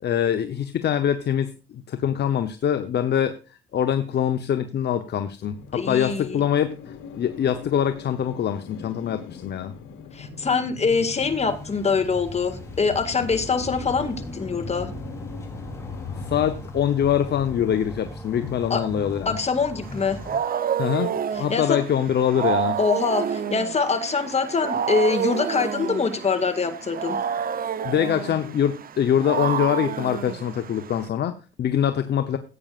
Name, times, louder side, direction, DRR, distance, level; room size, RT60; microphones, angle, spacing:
voice 1, 0.0-3.4 3.7-6.7 7.1-9.7 16.3-19.4 20.8-22.8 27.8-32.4, left 9 dB, 55° left, 9 dB, 0.9 m, -24 dB
sound 1, 5.4-16.5, left 6 dB, 85° left, 1.6 m, -41 dB
voice 2, 5.7-6.4 10.1-14.9 18.7-18.8 19.3-20.2 21.3-21.8 22.8-27.2, left 4 dB, 35° left, 8 dB, 1.9 m, -24 dB
sound 2, 11.2-20.4, equal, 15° left, 3.2 m, -38 dB
Wild animals, 19.9-31.1, right 8 dB, 45° right, 0.8 m, -29 dB
16.0 x 8.8 x 2.5 m, 0.32 s
cardioid pair, 90°, 20 cm